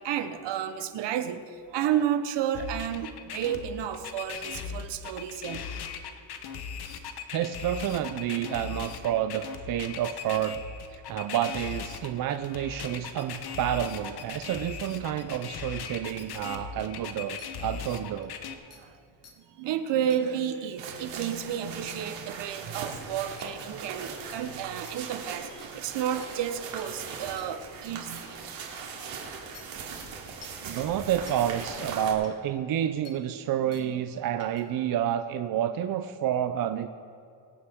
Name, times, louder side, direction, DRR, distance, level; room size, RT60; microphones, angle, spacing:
voice 1, 0.0-5.6 18.7-19.0 19.4-28.4, right 9 dB, 70° right, 1.0 m, -31 dB
sound 1, 2.5-18.5, left 7 dB, 55° left, 1.1 m, -38 dB
voice 2, 7.3-10.6 10.9-18.3 30.6-36.9, right 10 dB, 50° right, 0.5 m, -29 dB
sound 2, 17.4-17.5 18.2-18.3 18.7-18.8 19.2-19.3 20.1-20.2 21.9-22.0 22.7-22.9 23.4-23.5 24.0-24.1 24.9-25.0 25.6-25.7 26.2-26.3 26.8-26.9 27.4-27.5 28.2-28.3 28.8-28.9 29.5-29.6 30.4-30.6 31.3-31.4 32.2-32.3 33.0-33.2 33.7-33.9 34.4-34.6, left 5 dB, 35° left, 1.6 m, -50 dB
sound 3, 20.8-32.1, right 5 dB, 85° right, 2.9 m, -40 dB
24.0 x 9.7 x 3.6 m
cardioid pair, 160°, 45 cm